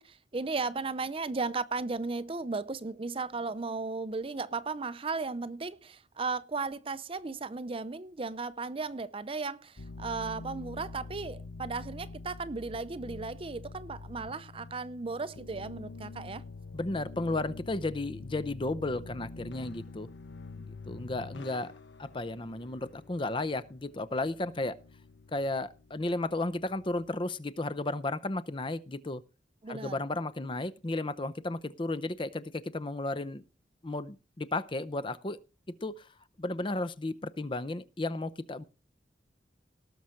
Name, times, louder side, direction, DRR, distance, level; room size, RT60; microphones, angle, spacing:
voice 1, 0.0-16.4 29.6-30.0, right 4 dB, 30° right, 0.6 m, -35 dB
sound 1, 9.8-27.2, left 3 dB, 90° left, 1.0 m, -46 dB
voice 2, 16.7-20.1 20.6-21.7 22.0-24.8 25.3-29.2 29.7-33.4 33.8-35.4 35.8-36.1 36.4-38.6, left 2 dB, 30° left, 0.6 m, -34 dB
18.5 x 6.4 x 4.4 m
head